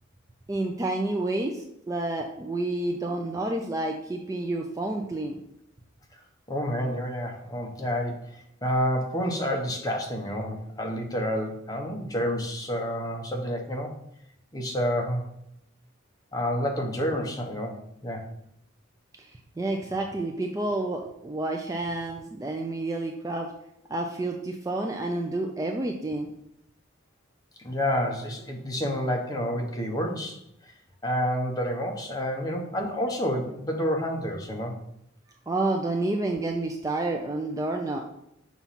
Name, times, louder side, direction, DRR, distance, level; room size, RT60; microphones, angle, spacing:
voice 1, 0.5-5.4 19.2-19.3 19.6-23.5 23.9-26.3 35.5-38.0, right 2 dB, 15° right, 2 dB, 0.3 m, -29 dB
voice 2, 6.5-13.9 14.5-15.2 16.3-17.8 18.0-18.2 27.6-30.4 31.0-34.7, equal, 20° left, 2 dB, 0.8 m, -29 dB
5.6 x 3.0 x 5.6 m, 0.77 s
head